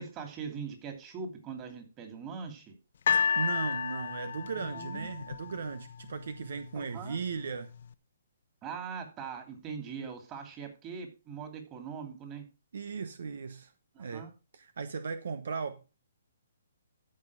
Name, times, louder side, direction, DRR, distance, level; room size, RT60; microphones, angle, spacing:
voice 1, 0.0-2.7 4.6-5.1 6.7-7.2 8.6-12.4 13.9-14.3, right 6 dB, 25° right, 2.8 m, -41 dB
sound 1, 3.1-6.2 7.0-7.1, left 7 dB, 60° left, 0.8 m, -31 dB
voice 2, 3.3-7.7 12.7-13.7 14.0-14.3 14.5-15.8, right 5 dB, 70° right, 0.9 m, -37 dB
14.0 x 5.6 x 4.9 m
hypercardioid pair, 145°, 0 cm